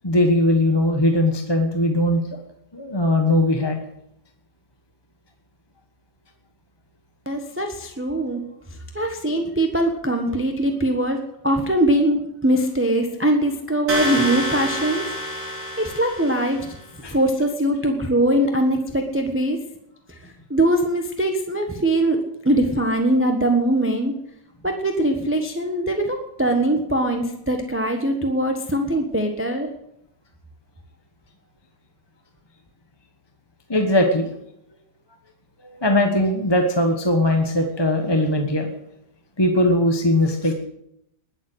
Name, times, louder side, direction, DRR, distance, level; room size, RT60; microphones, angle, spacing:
voice 1, 0.0-2.4 2.7-3.8 17.0-17.2 33.7-34.3 35.6-38.7 39.4-40.5, left 1 dB, 15° left, 4 dB, 1.2 m, -20 dB
voice 2, 7.3-8.4 8.9-11.2 11.4-15.0 15.8-16.6 17.1-19.6 20.5-22.2 22.4-24.1 24.6-29.7, right 1 dB, 10° right, 4 dB, 1.1 m, -21 dB
sound 1, 13.9-16.8, equal, 60° right, 3.5 m, -28 dB
20.0 x 7.4 x 8.0 m, 0.76 s
omnidirectional pair, 1.8 m